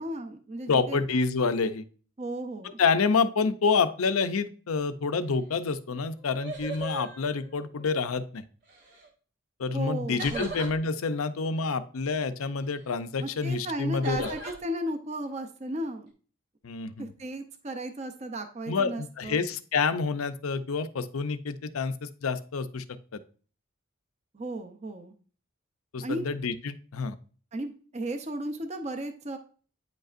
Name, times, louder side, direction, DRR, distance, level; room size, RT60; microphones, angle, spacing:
voice 1, 0.0-1.0 2.2-2.8 9.7-10.6 13.2-16.1 17.0-19.4 24.3-25.1 26.0-26.3 27.5-29.4, right 1 dB, 30° right, 6 dB, 0.5 m, -35 dB
voice 2, 0.7-1.8 2.8-8.4 9.6-14.3 16.6-17.1 18.7-22.8 25.9-27.1, left 4 dB, 85° left, 12 dB, 0.5 m, -28 dB
sound 1, 5.8-5.9 6.2-8.0 8.6-9.1 10.2-10.7 14.0-14.6, right 3 dB, 50° right, 1.6 m, -39 dB
9.3 x 5.2 x 2.5 m, 0.41 s
head